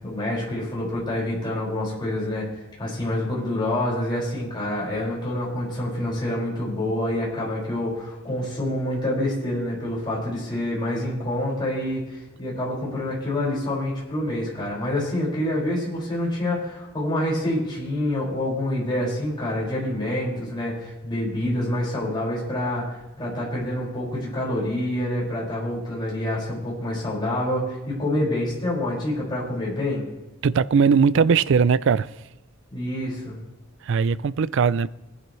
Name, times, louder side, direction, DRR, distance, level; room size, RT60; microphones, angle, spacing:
voice 1, 0.0-2.5 2.8-30.1 32.7-33.4, left 1 dB, 25° left, 5.5 m, -27 dB
voice 2, 30.4-32.1 33.8-34.9, right 6 dB, 60° right, 0.4 m, -19 dB
20.5 x 10.5 x 3.2 m
head